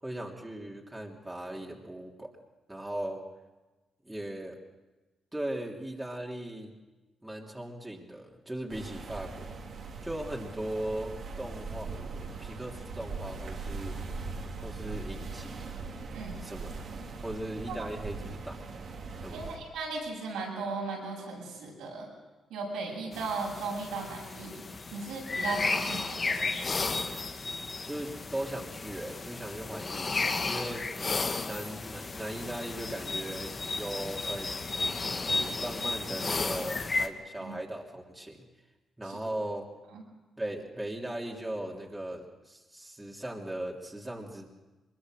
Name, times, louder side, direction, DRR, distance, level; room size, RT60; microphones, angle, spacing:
voice 1, 0.0-2.3 2.7-3.2 4.0-4.6 5.3-6.7 7.2-9.5 10.0-11.9 12.4-14.1 14.6-15.8 16.4-16.8 17.2-18.6 19.2-19.5 27.8-30.9 31.4-34.6 35.2-38.5 39.0-39.7 40.4-44.5, right 1 dB, 15° right, -1 dB, 3.1 m, -38 dB
sound 1, 8.7-19.6, right 4 dB, 65° right, 3.3 m, -40 dB
voice 2, 19.3-22.1 22.5-24.6 24.9-26.7 37.4-37.5 39.0-39.2 39.9-40.0, right 3 dB, 90° right, -2 dB, 7.8 m, -37 dB
sound 2, 23.1-37.1, left 3 dB, 40° left, 1.8 m, -33 dB
22.5 x 22.0 x 6.5 m, 1.2 s
supercardioid pair, 55°, 0 cm